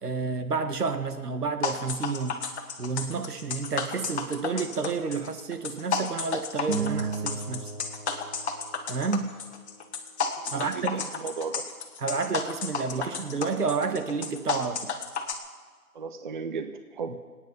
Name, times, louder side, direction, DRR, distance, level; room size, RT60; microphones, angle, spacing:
voice 1, 0.0-2.4 2.8-7.7 8.9-9.3 10.5-11.1 12.0-14.9, right 4 dB, 85° right, 8 dB, 1.8 m, -30 dB
sound 1, 1.6-15.3, left 5 dB, 45° left, 1.7 m, -32 dB
sound 2, 6.7-9.3, right 5 dB, 50° right, 2.2 m, -34 dB
voice 2, 10.4-11.6 15.9-17.2, right 5 dB, 35° right, 8 dB, 0.8 m, -35 dB
26.5 x 9.4 x 5.6 m, 1.5 s
hypercardioid pair, 155°, 46 cm